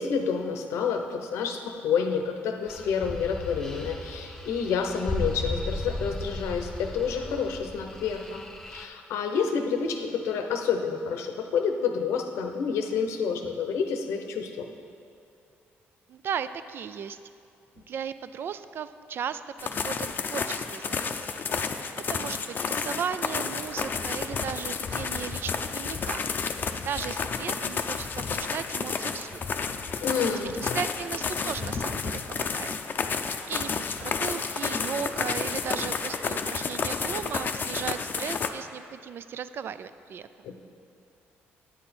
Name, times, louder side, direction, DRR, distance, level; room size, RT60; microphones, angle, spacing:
voice 1, 0.0-8.4 8.7-14.7 30.0-30.8 40.4-40.6, left 6 dB, 85° left, 5 dB, 0.7 m, -29 dB
sound 1, 2.7-8.9, left 1 dB, 10° left, 0.7 m, -36 dB
voice 2, 16.1-17.2 17.9-19.4 19.8-21.1 22.1-26.3 26.8-29.4 30.3-32.7 33.5-40.3, right 7 dB, 55° right, 13 dB, 0.4 m, -36 dB
sound 2, 19.6-38.5, left 5 dB, 45° left, 0.5 m, -31 dB
9.4 x 7.9 x 4.3 m, 2.4 s
cardioid pair, 95°, 5 cm